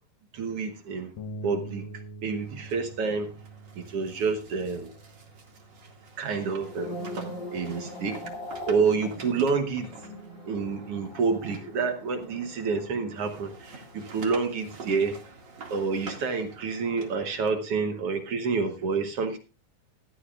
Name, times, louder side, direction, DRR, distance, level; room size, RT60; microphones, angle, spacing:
voice 1, 0.3-1.1 1.4-1.9 2.2-3.3 3.7-4.9 6.2-7.0 7.5-8.2 8.7-9.9 10.5-15.3 15.7-19.4, right 5 dB, 60° right, 1.6 m, -28 dB
sound 1, 1.2-7.4, right 2 dB, 70° left, 1.6 m, -45 dB
sound 2, 2.3-12.8 13.2-17.5, right 3 dB, 35° right, 2.4 m, -47 dB
sound 3, 6.6-15.0 15.2-15.6, left 1 dB, 55° left, 3.6 m, -42 dB
16.5 x 13.5 x 2.4 m
omnidirectional pair, 4.0 m